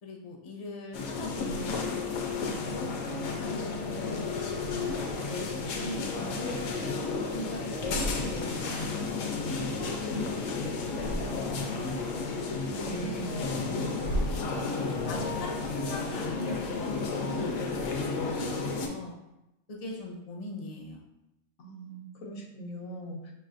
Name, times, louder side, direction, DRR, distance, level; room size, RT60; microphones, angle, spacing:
voice 1, 0.0-2.0 2.6-5.0 5.3-6.7 7.3-8.9 9.2-9.4 9.8-10.4 10.7-11.8 12.1-12.3 12.9-13.8 14.4-17.5 17.7-19.2 19.7-21.0, left 1 dB, 40° left, -1 dB, 0.5 m, -40 dB
sound 1, 0.9-18.9, left 4 dB, 75° left, 0.9 m, -32 dB
sound 2, 2.8-4.0 4.6-5.6 6.0-7.3 7.6-8.7 9.0-10.4 10.8-11.8 12.3-15.0, equal, 60° right, 0.5 m, -39 dB
voice 2, 12.7-13.4 21.6-23.3, right 2 dB, 90° left, 0 dB, 1.2 m, -40 dB
4.7 x 3.1 x 2.5 m, 0.90 s
omnidirectional pair, 1.4 m